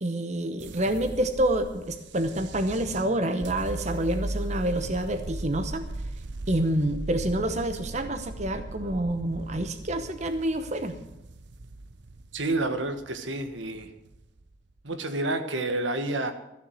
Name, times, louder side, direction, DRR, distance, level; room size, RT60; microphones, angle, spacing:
voice 1, 0.0-5.8 6.5-11.0, right 1 dB, 40° right, 8 dB, 0.9 m, -28 dB
sound 1, 0.6-14.8, right 2 dB, 70° right, 0.7 m, -38 dB
voice 2, 12.3-13.9 14.8-16.3, right 2 dB, 90° right, 7 dB, 1.6 m, -29 dB
14.5 x 7.3 x 7.9 m, 0.90 s
head